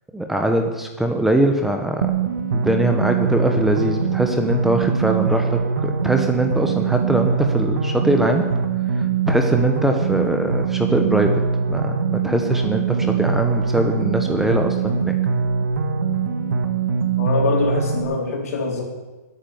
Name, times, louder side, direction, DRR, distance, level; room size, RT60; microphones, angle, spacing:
voice 1, 0.1-2.1 2.5-8.5 8.9-11.3 11.7-15.2, right 1 dB, 5° right, 4 dB, 1.0 m, -22 dB
sound 1, 2.0-18.0, right 5 dB, 75° right, 1.9 m, -22 dB
voice 2, 17.2-18.8, left 3 dB, 60° left, 1 dB, 4.4 m, -23 dB
20.5 x 9.2 x 7.2 m, 1.2 s
hypercardioid pair, 140°, 9 cm